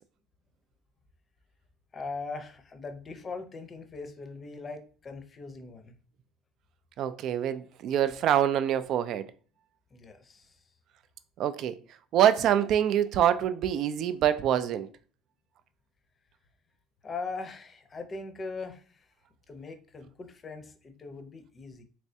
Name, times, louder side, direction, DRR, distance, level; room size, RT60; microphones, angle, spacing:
voice 1, 1.9-5.9 9.9-10.6 17.0-19.1 19.5-21.8, left 4 dB, 30° left, 0.6 m, -40 dB
voice 2, 7.0-9.3 11.4-11.7 12.1-14.9, right 10 dB, 55° right, 0.3 m, -25 dB
3.3 x 3.1 x 2.7 m
supercardioid pair, 105°, 0 cm